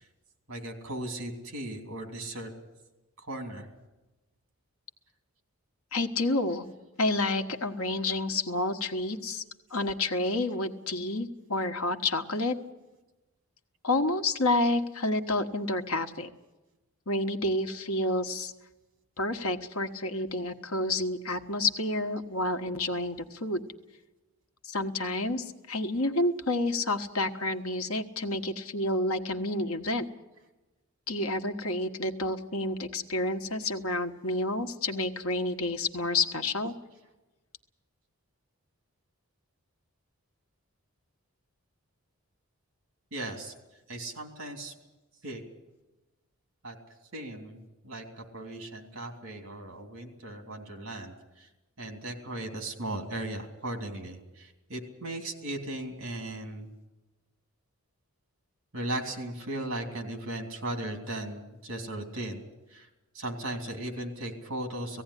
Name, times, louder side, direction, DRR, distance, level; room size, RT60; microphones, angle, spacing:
voice 1, 0.5-2.5 3.2-3.7 43.1-43.5 43.9-44.7 45.2-45.4 46.6-46.7 47.1-51.5 51.8-56.7 58.7-62.4 62.7-62.9 63.1-65.0, right 1 dB, 60° right, 4 dB, 3.1 m, -37 dB
voice 2, 5.9-6.7 7.0-9.4 9.7-12.5 13.8-16.3 17.1-18.5 19.2-23.6 24.6-30.0 31.1-36.7, left 2 dB, 70° left, 6 dB, 1.3 m, -29 dB
18.0 x 16.0 x 10.0 m, 1.1 s
head